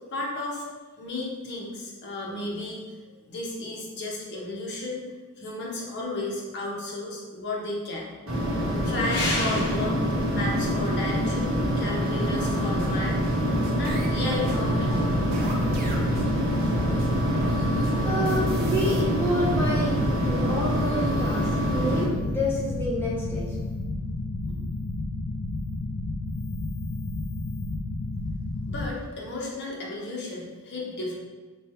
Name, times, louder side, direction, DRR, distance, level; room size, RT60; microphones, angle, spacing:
voice 1, 0.1-0.7 1.0-5.0 5.4-8.1 8.8-13.2 13.7-15.1 28.7-31.1, left 2 dB, 50° left, -3 dB, 0.8 m, -33 dB
sound 1, 8.3-22.0, equal, 60° right, 0.9 m, -26 dB
sound 2, 12.4-19.0, right 1 dB, 40° right, 0.6 m, -39 dB
sound 3, 14.6-28.9, left 2 dB, 85° left, 0.3 m, -32 dB
voice 2, 18.1-19.9 20.2-21.4 21.7-23.5, left 1 dB, 10° left, -7 dB, 0.5 m, -28 dB
3.2 x 2.3 x 4.3 m, 1.3 s
head